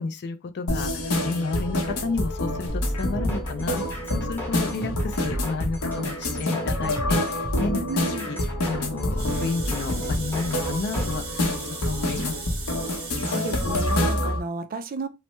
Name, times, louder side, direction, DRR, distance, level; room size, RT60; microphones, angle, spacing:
voice 1, 0.0-11.6 11.8-12.4, left 4 dB, 50° left, 0.4 m, -31 dB
sound 1, 0.7-14.4, left 1 dB, 85° left, 0.8 m, -27 dB
sound 2, 2.7-11.2, equal, 10° left, 0.9 m, -33 dB
voice 2, 7.7-8.3 13.0-15.1, right 3 dB, 40° right, 0.5 m, -33 dB
sound 3, 9.2-14.2, right 4 dB, 25° right, 1.2 m, -38 dB
3.2 x 2.1 x 3.0 m
head